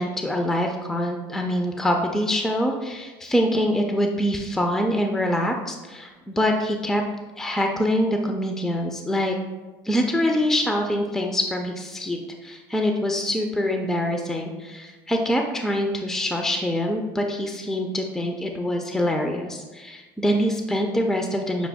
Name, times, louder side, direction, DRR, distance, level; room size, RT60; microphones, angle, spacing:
voice 1, 0.0-7.0 7.4-9.4 9.8-21.7, equal, 5° left, 3 dB, 0.3 m, -24 dB
5.9 x 2.2 x 3.4 m, 1.3 s
cardioid pair, 130°, 9 cm